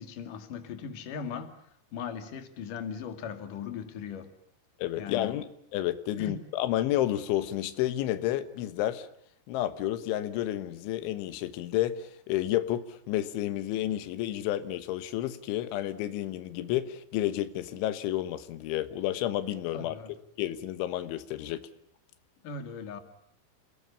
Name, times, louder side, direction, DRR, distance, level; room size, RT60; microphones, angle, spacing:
voice 1, 0.0-1.5 1.9-4.3 5.0-5.3 6.2-6.4 19.7-20.1 22.4-23.0, left 6 dB, 50° left, 3.6 m, -38 dB
voice 2, 4.8-9.1 9.5-20.0 20.4-21.7, left 13 dB, 90° left, 3.6 m, -31 dB
28.5 x 21.0 x 8.5 m
omnidirectional pair, 5.3 m